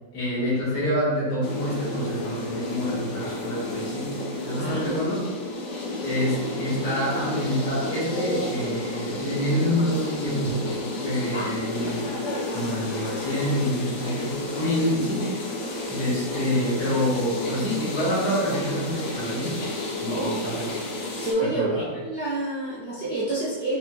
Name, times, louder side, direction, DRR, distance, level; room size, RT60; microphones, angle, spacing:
voice 1, 0.1-5.3 6.0-12.1 12.5-15.3 15.9-19.6 20.0-20.8 21.4-21.9, equal, 60° left, -7 dB, 2.0 m, -27 dB
sound 1, 1.4-21.3, left 2 dB, 80° left, 0.6 m, -31 dB
voice 2, 4.6-4.9 11.3-11.9 20.1-20.4 21.2-23.8, right 2 dB, 40° right, -8 dB, 0.3 m, -28 dB
5.2 x 2.5 x 2.8 m, 1.3 s
omnidirectional pair, 2.1 m